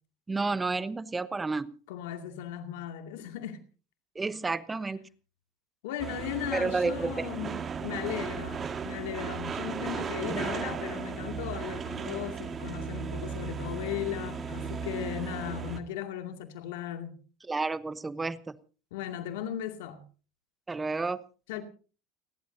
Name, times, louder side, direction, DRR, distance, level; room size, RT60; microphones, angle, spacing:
voice 1, 0.3-1.8 4.1-5.0 6.5-7.3 17.5-18.6 20.7-21.2, right 3 dB, 15° right, 1.0 m, -31 dB
voice 2, 1.9-3.6 5.8-17.1 18.9-20.0 21.5-21.6, left 10 dB, 80° left, 2.4 m, -37 dB
sound 1, 6.0-15.8, right 6 dB, 30° right, 1.9 m, -36 dB
30.0 x 12.0 x 2.7 m
supercardioid pair, 100°, 0 cm